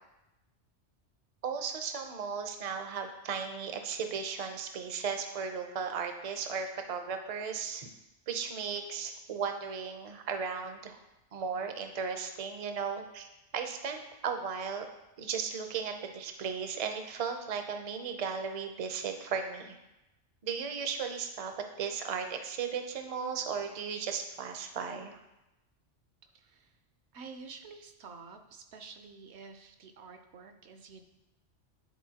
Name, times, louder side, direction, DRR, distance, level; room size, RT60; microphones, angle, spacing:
voice 1, 1.4-7.9 8.3-11.0 11.3-13.3 13.5-14.8 15.2-19.8 20.4-25.2, right 6 dB, 45° right, 6 dB, 0.5 m, -36 dB
voice 2, 26.2-26.8 27.1-31.0, right 4 dB, 70° right, 6 dB, 0.9 m, -49 dB
10.5 x 4.0 x 2.8 m, 0.95 s
omnidirectional pair, 1.2 m